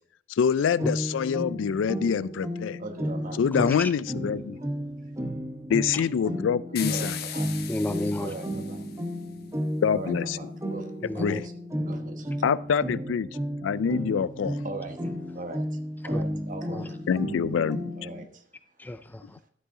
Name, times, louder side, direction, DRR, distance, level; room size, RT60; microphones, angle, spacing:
voice 1, 0.3-2.8 3.4-4.6 5.7-7.2 9.8-10.4 11.2-11.4 12.4-13.3 13.6-14.6 17.1-17.9, left 7 dB, 90° left, 0.3 m, -25 dB
sound 1, 0.8-18.2, equal, 15° right, 0.8 m, -33 dB
voice 2, 2.8-3.4 4.5-4.8 6.2-6.3 6.9-7.5 8.2-8.8 9.9-11.5 11.8-12.4 14.6-15.0 15.3-15.6 16.0-17.0 18.0-18.4, right 2 dB, 45° right, 1.1 m, -40 dB
voice 3, 3.6-3.9 5.9-6.0 7.7-8.3 11.0-11.4 16.1-16.2 16.7-16.8 18.8-19.4, left 1 dB, 10° left, 0.3 m, -31 dB
sound 2, 6.8-9.2, left 10 dB, 55° left, 1.0 m, -38 dB
12.5 x 7.7 x 3.7 m
head